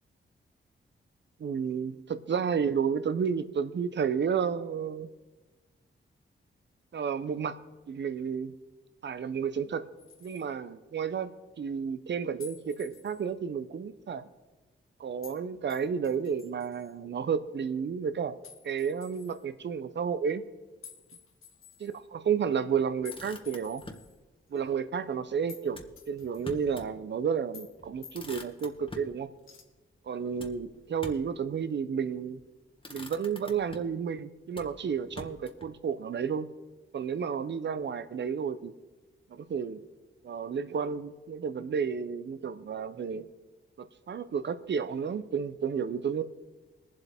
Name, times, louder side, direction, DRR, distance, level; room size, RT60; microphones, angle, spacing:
voice 1, 1.4-5.1 6.9-7.6 7.9-8.5 9.0-9.8 10.2-14.3 15.0-18.3 18.6-20.4 21.8-23.8 24.5-25.8 26.1-29.3 30.1-32.4 32.9-36.5 36.9-38.7 39.3-39.8 40.2-43.3 43.8-46.2, right 6 dB, 60° right, 12 dB, 0.8 m, -31 dB
sound 1, 10.0-10.5 12.4-13.3 15.2-15.4 15.7-16.9 18.4-19.4 20.8-22.0 23.0-24.2 24.6-24.7 25.5-25.7 26.0-26.8 27.5-27.8 28.0-28.7 29.4-29.6, left 6 dB, 85° left, 1.3 m, -51 dB
Motor vehicle (road), 23.1-24.1 25.7-26.9 27.3-27.4 27.8-29.2 30.4-31.4 32.2-32.5 32.8-34.0 34.5-35.7, left 2 dB, 25° left, 1.3 m, -46 dB
21.0 x 7.7 x 3.6 m, 1.2 s
cardioid pair, 70°, 21 cm